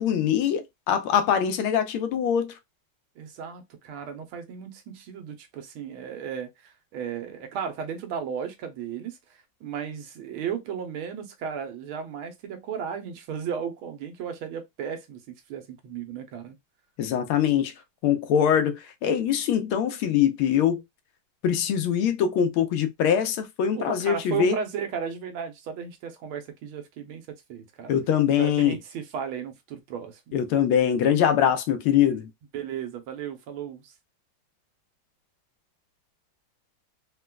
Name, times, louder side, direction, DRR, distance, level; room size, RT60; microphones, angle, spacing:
voice 1, 0.0-2.5 17.0-17.7 18.0-20.8 21.4-24.6 27.9-28.7 30.3-32.3, left 9 dB, 90° left, 1.5 m, -23 dB
voice 2, 3.2-16.6 23.7-27.9 28.4-30.4 32.5-33.9, right 7 dB, 80° right, 1.6 m, -35 dB
4.1 x 2.2 x 2.2 m
omnidirectional pair, 2.3 m